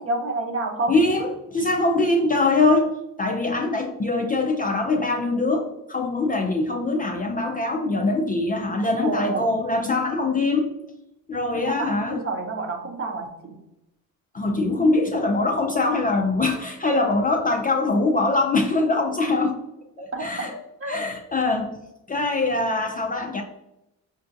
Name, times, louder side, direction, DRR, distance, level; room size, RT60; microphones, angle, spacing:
voice 1, 0.0-1.0 9.0-9.4 11.7-13.6 20.1-20.5 20.8-21.1, right 2 dB, 35° right, 3 dB, 0.8 m, -28 dB
voice 2, 0.9-10.7 11.3-12.2 14.3-19.6 20.0-20.5 20.9-21.8 22.1-23.4, left 2 dB, 25° left, 2 dB, 0.4 m, -23 dB
5.3 x 2.2 x 2.6 m, 0.90 s
supercardioid pair, 70°, 39 cm